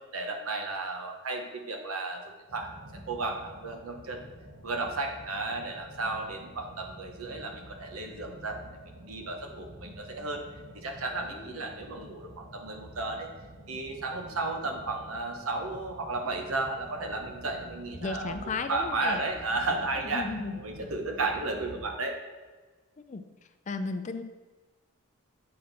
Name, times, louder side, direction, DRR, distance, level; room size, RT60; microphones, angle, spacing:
voice 1, 0.1-2.2 2.5-2.7 3.1-4.2 4.6-8.6 8.9-10.4 10.7-13.3 13.7-18.4 18.7-20.3 20.6-22.2, right 3 dB, 85° right, 3 dB, 1.0 m, -33 dB
sound 1, 2.5-21.8, right 1 dB, 55° right, 0.9 m, -48 dB
voice 2, 18.0-19.2 20.0-20.5 23.0-23.2 23.7-24.2, left 4 dB, 35° left, 9 dB, 0.3 m, -35 dB
7.5 x 4.2 x 4.1 m, 1.3 s
head